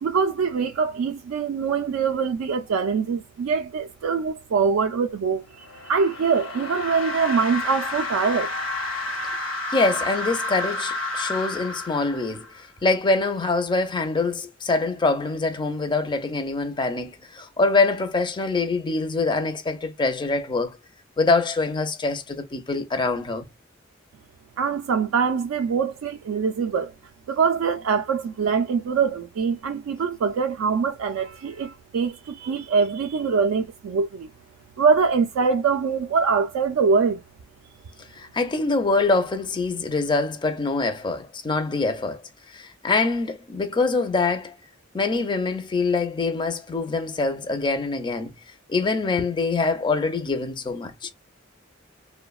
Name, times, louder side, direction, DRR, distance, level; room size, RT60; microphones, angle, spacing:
voice 1, 0.0-8.5 24.6-26.9 27.3-34.3 34.8-37.2, right 5 dB, 85° right, 0.3 m, -23 dB
sound 1, 5.5-12.6, left 2 dB, 70° left, 0.7 m, -30 dB
voice 2, 9.7-20.8 21.2-23.5 38.2-42.2 42.5-44.5 44.9-48.3 48.7-51.1, left 3 dB, 20° left, 0.4 m, -24 dB
2.9 x 2.1 x 2.3 m
head